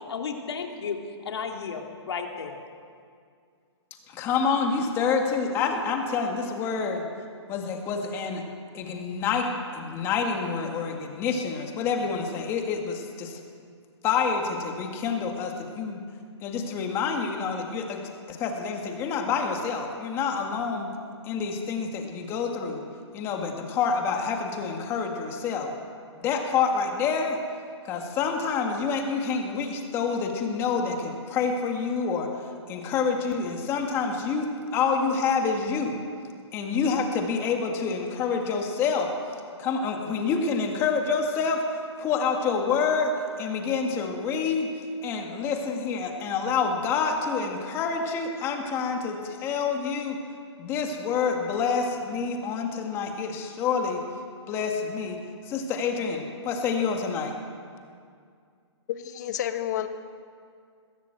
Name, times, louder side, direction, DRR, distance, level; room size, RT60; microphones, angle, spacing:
voice 1, 0.1-1.0 1.2-2.6, left 6 dB, 65° left, 2 dB, 3.3 m, -33 dB
voice 2, 4.1-7.0 7.5-8.4 8.7-13.4 14.0-16.0 16.4-18.0 18.3-20.9 21.2-22.8 23.1-25.7 26.2-27.4 27.9-32.3 32.7-35.9 36.5-39.1 39.6-41.6 42.0-43.1 43.4-44.7 45.0-50.2 50.6-54.0 54.5-55.2 55.5-57.3, left 5 dB, 15° left, 3 dB, 1.9 m, -27 dB
voice 3, 58.9-59.9, left 11 dB, 40° left, 8 dB, 1.4 m, -30 dB
21.5 x 15.5 x 8.0 m, 2.2 s
hypercardioid pair, 165°, 15 cm